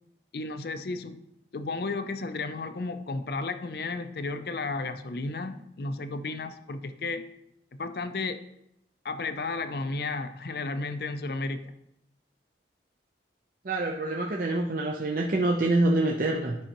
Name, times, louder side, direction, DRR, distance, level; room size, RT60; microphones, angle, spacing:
voice 1, 0.3-1.2 1.5-7.2 7.7-8.4 9.0-11.7, left 3 dB, 60° left, 10 dB, 0.5 m, -33 dB
voice 2, 13.6-16.6, right 2 dB, 50° right, 0 dB, 0.6 m, -26 dB
10.5 x 5.5 x 2.9 m, 0.80 s
head